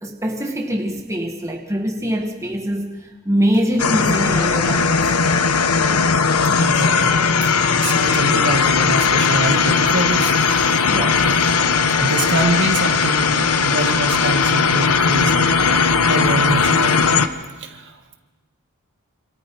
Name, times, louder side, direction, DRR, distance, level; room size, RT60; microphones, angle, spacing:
voice 1, 0.0-5.1 10.9-11.2, equal, 15° right, 2 dB, 1.6 m, -23 dB
sound 1, 3.8-17.3, left 5 dB, 80° left, 1.1 m, -17 dB
voice 2, 6.6-10.4 12.0-15.5 16.0-17.0 17.6-18.0, right 2 dB, 55° right, 5 dB, 1.9 m, -25 dB
27.5 x 27.0 x 4.7 m, 1.3 s
head